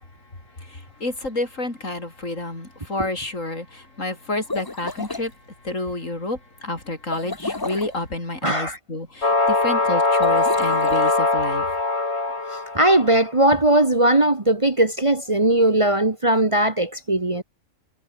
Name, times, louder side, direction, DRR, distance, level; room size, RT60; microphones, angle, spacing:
voice 1, 0.3-11.7, left 2 dB, 70° left, 6.0 m, -30 dB
sound 1, 4.3-5.3 7.1-8.0 10.1-11.2, left 2 dB, 20° left, 1.1 m, -31 dB
voice 2, 8.4-8.8 12.7-17.4, right 1 dB, 25° right, 1.4 m, -19 dB
sound 2, 9.2-13.3, left 3 dB, 55° left, 3.7 m, -21 dB
omnidirectional pair, 1.4 m